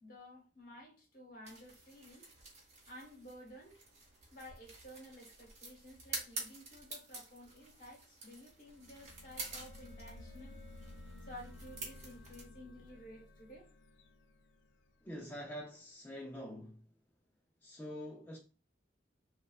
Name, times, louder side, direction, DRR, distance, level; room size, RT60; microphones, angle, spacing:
voice 1, 0.0-2.3 2.8-3.8 4.3-10.6 11.2-13.7, equal, 45° left, 1.1 m, -53 dB
sound 1, 1.4-12.4, right 2 dB, 40° right, 1.0 m, -49 dB
sound 2, 8.6-15.3, left 2 dB, 75° left, 0.5 m, -55 dB
voice 2, 15.0-16.8 17.6-18.4, equal, 10° left, 0.4 m, -45 dB
3.2 x 2.3 x 2.3 m
head